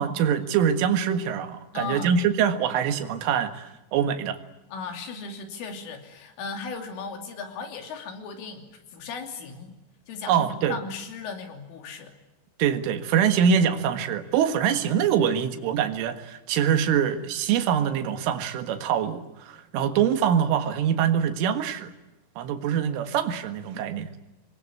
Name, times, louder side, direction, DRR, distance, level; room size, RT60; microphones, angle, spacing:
voice 1, 0.0-4.4 10.3-10.8 12.6-21.9 22.4-24.1, right 8 dB, 90° right, 8 dB, 4.2 m, -24 dB
voice 2, 1.7-2.2 4.7-9.7 10.1-12.2, left 4 dB, 90° left, 5 dB, 5.4 m, -36 dB
26.5 x 21.5 x 9.7 m, 0.98 s
omnidirectional pair, 5.5 m